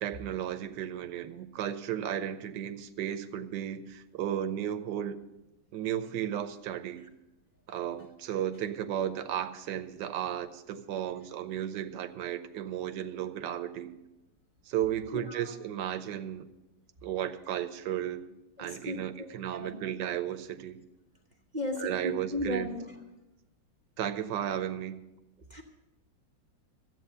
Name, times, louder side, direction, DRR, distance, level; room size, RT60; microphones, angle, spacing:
voice 1, 0.0-5.2 5.7-7.0 7.7-13.9 14.7-16.5 17.0-18.2 18.6-20.8 21.8-22.7 24.0-25.0, right 10 dB, 75° right, 10 dB, 1.4 m, -34 dB
voice 2, 15.1-15.6 18.6-20.2 21.5-22.9 25.5-25.6, left 1 dB, 30° right, 1 dB, 0.9 m, -37 dB
14.0 x 8.6 x 6.7 m, 0.99 s
omnidirectional pair, 2.0 m